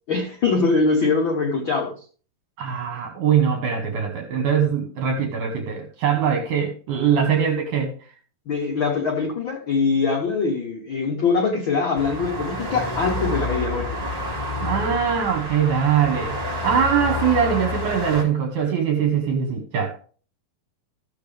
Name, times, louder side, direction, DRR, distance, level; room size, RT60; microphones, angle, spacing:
voice 1, 0.1-2.0 8.5-14.0, left 4 dB, 70° left, 1 dB, 1.2 m, -23 dB
voice 2, 2.6-7.9 14.6-20.0, right 7 dB, 65° right, 3 dB, 2.6 m, -22 dB
sound 1, 11.9-18.2, left 1 dB, 15° right, 1.3 m, -28 dB
14.5 x 6.9 x 3.4 m, 0.41 s
omnidirectional pair, 4.0 m